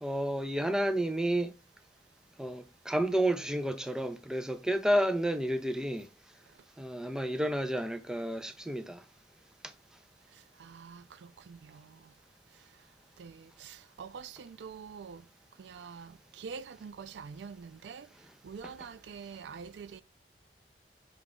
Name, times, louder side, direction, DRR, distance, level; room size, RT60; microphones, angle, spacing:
voice 1, 0.0-1.5 2.4-6.1 6.8-9.0 18.6-18.7, right 1 dB, 5° right, 0.4 m, -31 dB
voice 2, 10.3-12.1 13.2-15.3 15.6-18.1 18.4-20.0, right 6 dB, 80° right, 0.4 m, -46 dB
6.1 x 2.3 x 3.6 m
head